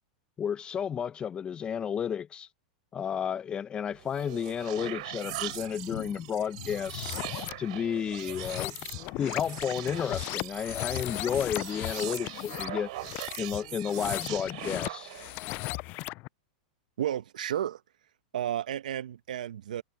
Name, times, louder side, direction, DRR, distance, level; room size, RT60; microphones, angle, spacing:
voice 1, 0.4-2.5 2.9-7.2 7.6-8.8 9.2-12.9 13.4-15.1, left 8 dB, 25° left, 0.7 m, -32 dB
sound 1, 3.9-15.4, right 19 dB, 65° right, 3.5 m, -41 dB
sound 2, 4.6-13.7, left 15 dB, 70° left, 5.4 m, -49 dB
sound 3, 6.8-7.5 8.2-16.3, left 23 dB, 45° left, 0.4 m, -37 dB
voice 2, 17.0-17.8 18.3-19.8, right 11 dB, 80° right, 1.0 m, -32 dB
hypercardioid pair, 115°, 4 cm